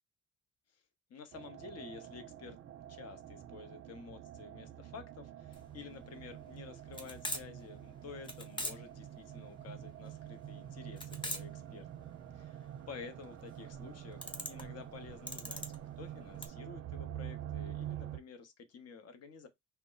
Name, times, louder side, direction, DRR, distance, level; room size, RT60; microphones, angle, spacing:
voice 1, 1.1-2.6 2.9-12.1 12.3-15.6 16.0-19.5, left 5 dB, 55° left, 0.8 m, -51 dB
sound 1, 1.3-18.2, right 11 dB, 50° right, 0.5 m, -47 dB
sound 2, 5.5-16.5, left 1 dB, 15° left, 0.7 m, -44 dB
2.1 x 2.0 x 3.8 m
cardioid pair, 90°, 30 cm